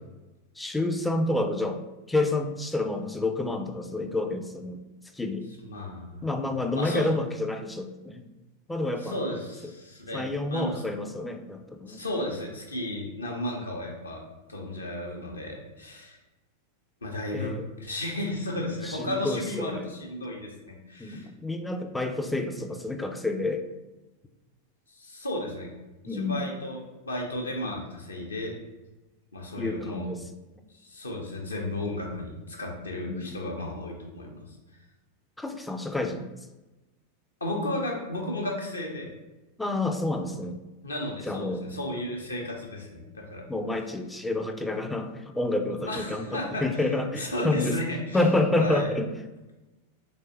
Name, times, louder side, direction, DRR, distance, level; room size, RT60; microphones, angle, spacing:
voice 1, 0.6-1.8 2.1-4.8 5.1-5.5 6.2-8.2 8.7-9.2 10.1-12.0 17.3-17.7 18.8-19.9 21.0-23.6 26.1-26.4 29.6-30.2 33.1-33.4 35.4-36.2 39.6-40.6 41.3-41.6 43.5-47.8 48.1-49.1, left 2 dB, 5° left, 6 dB, 0.3 m, -29 dB
voice 2, 5.6-6.2 6.7-7.1 9.0-10.7 11.9-14.2 14.5-16.2 17.0-21.3 24.9-25.7 26.0-28.5 29.3-30.1 30.8-34.6 37.4-39.1 40.8-43.5 45.8-46.6 47.2-48.3 48.6-48.9, left 1 dB, 75° left, -1 dB, 0.7 m, -34 dB
3.2 x 3.2 x 2.8 m, 1.1 s
figure-of-eight pair, 90°, 0 cm